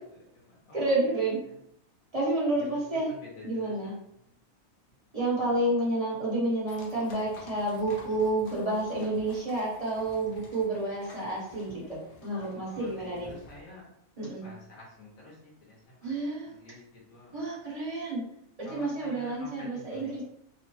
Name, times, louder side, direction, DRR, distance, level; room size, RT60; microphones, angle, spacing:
voice 1, 0.0-1.5 2.5-4.3 5.0-5.1 5.3-5.6 12.4-13.9 14.4-16.1 16.4-17.5 18.6-20.2, left 1 dB, 85° left, -4 dB, 1.3 m, -49 dB
voice 2, 0.7-1.4 2.1-3.1 3.4-3.9 5.1-13.3 14.2-14.4 16.0-16.5 17.3-18.2 18.6-20.2, right 2 dB, 30° right, -6 dB, 1.1 m, -30 dB
sound 1, 6.7-13.6, left 3 dB, 50° left, 0.7 m, -51 dB
3.0 x 2.1 x 3.0 m, 0.75 s
omnidirectional pair, 1.4 m